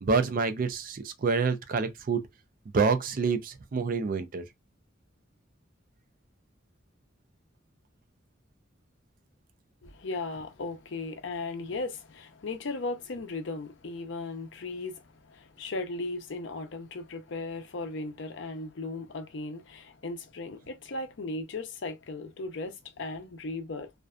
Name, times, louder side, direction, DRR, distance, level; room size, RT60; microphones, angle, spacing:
voice 1, 0.0-2.2 2.7-4.4, right 4 dB, 45° right, 0.4 m, -27 dB
voice 2, 9.8-23.9, left 3 dB, 70° left, 0.5 m, -37 dB
2.5 x 2.2 x 2.4 m
head